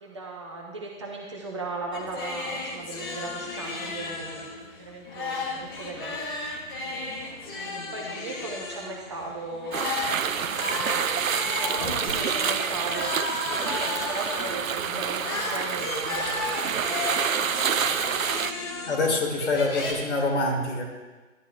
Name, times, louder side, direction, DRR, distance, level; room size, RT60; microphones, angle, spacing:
voice 1, 0.0-4.5 4.8-6.2 6.7-7.1 7.6-9.7 10.5-11.0 11.4-13.1 13.5-16.6 17.7-18.2, right 3 dB, 20° right, 0 dB, 0.6 m, -37 dB
sound 1, 1.9-19.9, left 3 dB, 15° left, 0.7 m, -34 dB
sound 2, 9.7-18.5, right 7 dB, 80° right, 0.5 m, -28 dB
voice 2, 18.9-20.8, left 2 dB, 55° left, 1 dB, 2.1 m, -25 dB
11.5 x 10.5 x 2.2 m, 1.3 s
figure-of-eight pair, 140°, 40 cm